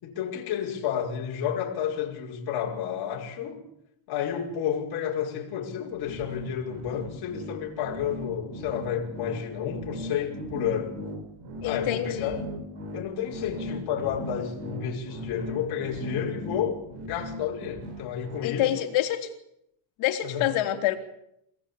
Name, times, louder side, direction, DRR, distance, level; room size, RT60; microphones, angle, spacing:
voice 1, 0.0-3.7 4.1-11.0 11.6-12.5 12.9-16.8 17.0-18.8 20.2-20.5, left 8 dB, 50° left, 5.6 m, -31 dB
sound 1, 5.9-18.5, equal, 60° right, 6.6 m, -38 dB
voice 2, 11.6-12.5 18.4-19.3 20.0-21.0, left 12 dB, 75° left, 3.7 m, -27 dB
29.0 x 18.0 x 8.7 m
cardioid pair, 180°, 48 cm